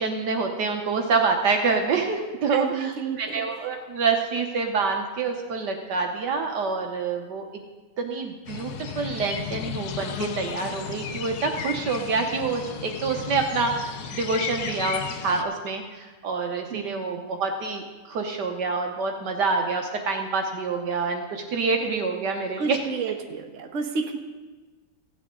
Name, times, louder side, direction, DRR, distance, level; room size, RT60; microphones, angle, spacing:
voice 1, 0.0-2.9 3.2-7.6 8.0-22.8, right 4 dB, 65° right, 3 dB, 1.5 m, -27 dB
voice 2, 2.5-3.7 16.7-17.1 22.6-24.2, right 5 dB, 45° right, 2 dB, 1.3 m, -31 dB
sound 1, 8.5-15.4, left 8 dB, 65° left, 1.1 m, -34 dB
16.0 x 9.1 x 3.8 m, 1.3 s
omnidirectional pair, 2.1 m